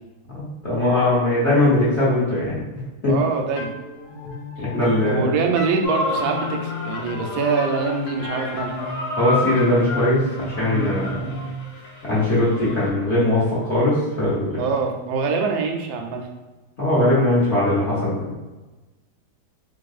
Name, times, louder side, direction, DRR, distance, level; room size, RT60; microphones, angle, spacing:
voice 1, 0.3-2.6 3.0-3.1 4.2-4.3 4.6-5.3 9.2-10.2 10.4-11.3 12.0-14.6 16.8-18.2, left 1 dB, 45° left, -8 dB, 1.0 m, -20 dB
voice 2, 3.1-3.7 5.0-8.8 14.6-16.3, right 4 dB, 85° right, 3 dB, 1.3 m, -24 dB
sound 1, 3.6-13.1, left 1 dB, 90° left, 1.4 m, -34 dB
sound 2, 5.8-12.9, left 2 dB, 75° left, 1.6 m, -31 dB
3.6 x 3.3 x 2.4 m, 1.1 s
omnidirectional pair, 2.1 m